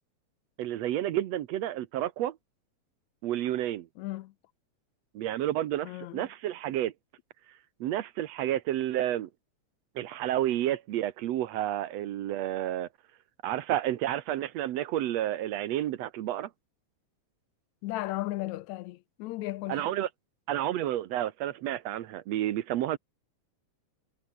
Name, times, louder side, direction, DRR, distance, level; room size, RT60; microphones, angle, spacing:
voice 1, 0.6-2.4 3.2-3.9 5.2-6.9 7.8-9.3 10.0-12.9 13.4-16.5 19.7-20.1 20.5-23.0, right 12 dB, 70° right, 2.0 m, -30 dB
voice 2, 4.0-4.3 5.9-6.3 17.8-19.9, left 17 dB, 80° left, 1.9 m, -35 dB
omnidirectional pair, 3.3 m